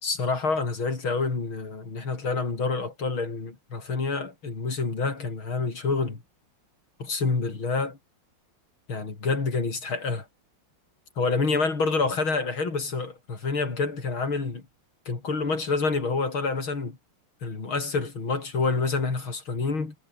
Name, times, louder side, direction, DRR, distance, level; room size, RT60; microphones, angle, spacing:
voice 1, 0.0-6.2 7.0-8.0 8.9-10.3 11.2-14.6 15.1-17.0 17.4-19.9, left 4 dB, 65° left, 5.1 m, -27 dB
omnidirectional pair, 2.4 m